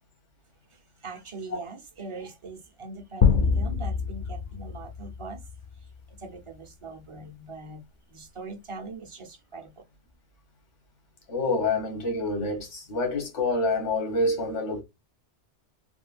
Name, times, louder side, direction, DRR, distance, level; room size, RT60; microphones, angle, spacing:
voice 1, 1.0-5.4 6.2-7.8 8.1-9.7, right 3 dB, 30° right, 0.7 m, -41 dB
sound 1, 3.2-5.7, left 6 dB, 55° left, 0.6 m, -25 dB
voice 2, 11.3-14.8, left 2 dB, 90° left, 1.6 m, -27 dB
3.7 x 2.6 x 2.5 m
omnidirectional pair, 1.2 m